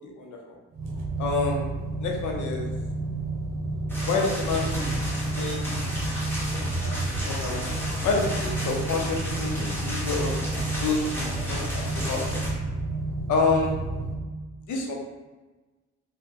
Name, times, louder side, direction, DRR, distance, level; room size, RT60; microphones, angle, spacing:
voice 1, 0.0-0.5 1.2-1.7 2.0-2.7 4.1-5.7 6.8-7.0 7.3-7.6 8.0-10.3 10.8-11.6 11.9-12.5 13.3-13.7 14.7-14.9, left 3 dB, 75° left, 0 dB, 0.8 m, -28 dB
sound 1, 0.7-14.1, right 2 dB, 65° right, 0.7 m, -30 dB
sound 2, 3.9-12.5, equal, 5° left, 1.1 m, -34 dB
2.8 x 2.3 x 3.6 m, 1.2 s
cardioid pair, 90°, 30 cm